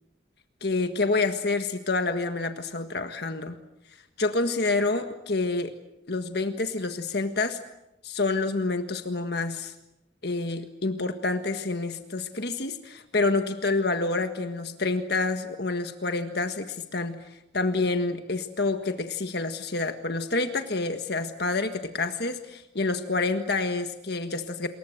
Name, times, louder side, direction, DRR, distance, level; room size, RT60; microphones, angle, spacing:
voice 1, 0.6-3.6 4.2-5.7 6.1-7.6 8.0-9.7 10.2-24.7, left 3 dB, 55° left, 7 dB, 1.6 m, -28 dB
28.0 x 22.5 x 8.0 m, 0.91 s
head